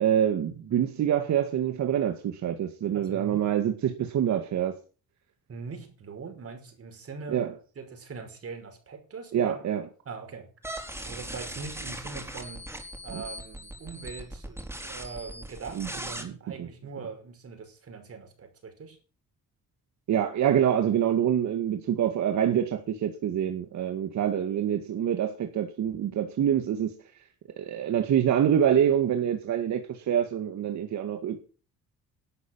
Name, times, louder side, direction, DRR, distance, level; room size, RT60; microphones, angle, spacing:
voice 1, 0.0-4.8 7.3-7.5 9.3-9.8 13.1-13.2 15.7-15.9 16.2-16.3 16.6-16.7 20.1-26.9 27.6-31.4, right 9 dB, 70° right, 2.2 m, -26 dB
voice 2, 2.9-3.5 5.5-9.6 10.1-10.5 11.1-12.7 13.0-19.0, right 5 dB, 50° right, 5.6 m, -41 dB
sound 1, 10.6-16.2, right 1 dB, 10° right, 4.7 m, -39 dB
12.5 x 8.7 x 7.4 m
cardioid pair, 90°, 30 cm